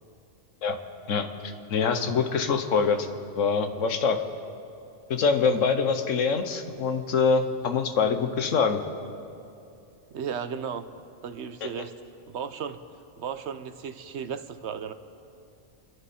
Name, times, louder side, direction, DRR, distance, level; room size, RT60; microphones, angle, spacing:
voice 1, 1.1-3.1 3.3-4.2 5.1-8.8 11.6-11.7, left 5 dB, 85° left, 7 dB, 1.4 m, -24 dB
voice 2, 10.1-10.9 11.2-12.0 12.3-12.8 13.2-14.9, right 7 dB, 65° right, 11 dB, 1.0 m, -35 dB
29.0 x 11.0 x 4.3 m, 2.7 s
omnidirectional pair, 1.3 m